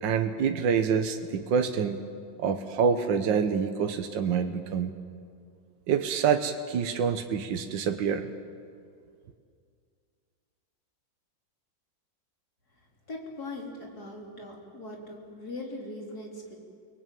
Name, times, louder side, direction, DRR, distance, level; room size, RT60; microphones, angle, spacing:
voice 1, 0.0-2.0 2.4-4.9 5.9-8.3, right 6 dB, 70° right, 6 dB, 1.7 m, -26 dB
voice 2, 13.1-16.6, left 2 dB, 50° left, -1 dB, 4.2 m, -40 dB
29.5 x 19.5 x 9.2 m, 2.3 s
omnidirectional pair, 2.1 m